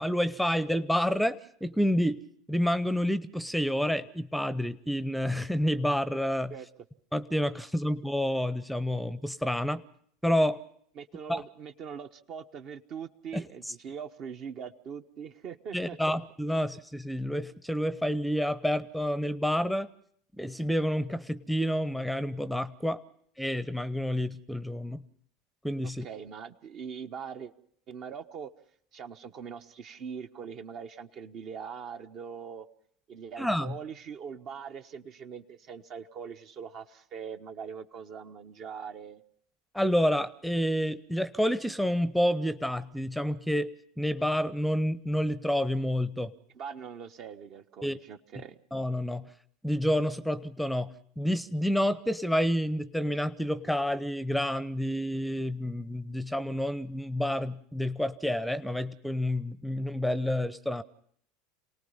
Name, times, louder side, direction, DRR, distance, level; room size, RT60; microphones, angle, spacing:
voice 1, 0.0-2.2 2.5-6.5 7.1-9.8 10.2-10.6 11.3-11.4 13.3-13.7 15.7-19.9 20.4-23.0 23.4-25.0 25.6-26.1 33.4-33.7 39.7-43.7 44.0-46.3 47.8-48.0 48.7-49.3 49.6-60.8, equal, ahead, 17 dB, 0.8 m, -29 dB
voice 2, 11.0-16.2 26.0-27.5 27.9-28.5 28.9-32.7 33.1-39.2 46.5-48.6, right 7 dB, 45° right, 7 dB, 1.1 m, -42 dB
28.0 x 19.0 x 5.6 m, 0.65 s
figure-of-eight pair, 75°, 0 cm